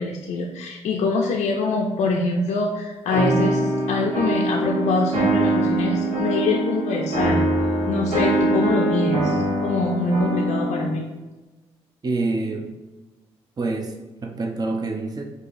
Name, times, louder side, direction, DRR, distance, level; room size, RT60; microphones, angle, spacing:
voice 1, 0.0-7.4 7.9-11.1, left 3 dB, 70° left, 0 dB, 0.4 m, -24 dB
sound 1, 3.1-10.9, right 2 dB, 75° right, 1.3 m, -23 dB
voice 2, 12.0-12.7 13.6-13.9 14.2-15.2, right 3 dB, 30° right, 2 dB, 0.6 m, -26 dB
4.6 x 2.6 x 2.6 m, 1.2 s
supercardioid pair, 55°, 12 cm